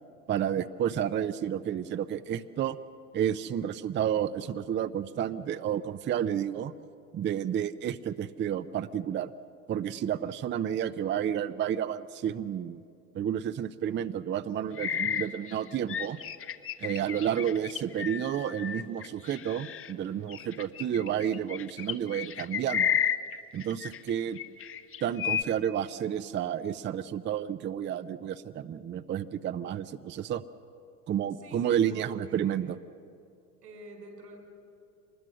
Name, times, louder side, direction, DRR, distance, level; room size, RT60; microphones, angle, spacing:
voice 1, 0.3-2.8 3.1-6.7 7.1-9.3 9.7-12.8 13.1-16.2 16.8-23.0 23.5-24.4 25.0-30.4 31.1-32.8, right 9 dB, 25° right, 12 dB, 0.6 m, -31 dB
sound 1, 14.8-19.9 20.3-24.1 24.4-25.4, left 9 dB, 30° left, 1.0 m, -32 dB
voice 2, 31.4-32.6 33.6-34.4, right 1 dB, 90° right, 3 dB, 5.3 m, -47 dB
24.5 x 20.5 x 6.3 m, 2.5 s
hypercardioid pair, 80°, 47 cm